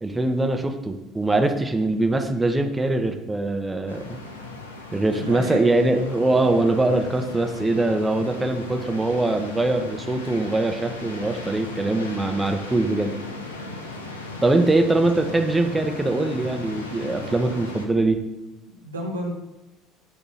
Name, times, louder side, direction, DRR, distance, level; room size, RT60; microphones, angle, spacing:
voice 1, 0.0-4.2 4.9-13.1 14.4-18.2, right 2 dB, 15° right, 5 dB, 0.7 m, -22 dB
sound 1, 3.9-17.9, left 3 dB, 90° left, 0.6 m, -37 dB
voice 2, 5.2-5.7 18.7-19.3, right 1 dB, 90° right, 2 dB, 0.7 m, -31 dB
6.2 x 2.9 x 5.5 m, 1.0 s
hypercardioid pair, 60°, 0 cm